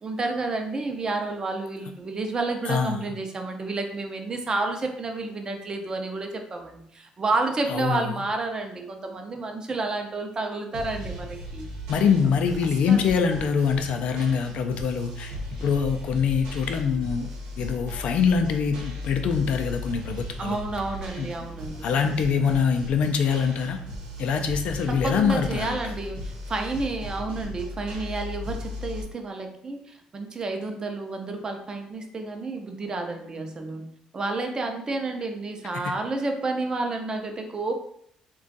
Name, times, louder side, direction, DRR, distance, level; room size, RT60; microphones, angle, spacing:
voice 1, 0.0-11.7 12.9-13.0 20.4-21.9 24.9-33.9 34.1-37.8, right 3 dB, 35° right, 4 dB, 0.5 m, -30 dB
voice 2, 2.7-3.1 7.7-8.1 11.9-15.4 15.6-17.3 17.6-20.6 21.2-21.3 21.8-23.8 24.2-25.9 35.8-36.0, left 6 dB, 65° left, 5 dB, 0.4 m, -24 dB
sound 1, 10.7-29.0, left 1 dB, 90° right, 0.9 m, -37 dB
2.4 x 2.3 x 3.9 m, 0.68 s
cardioid pair, 85°, 2 cm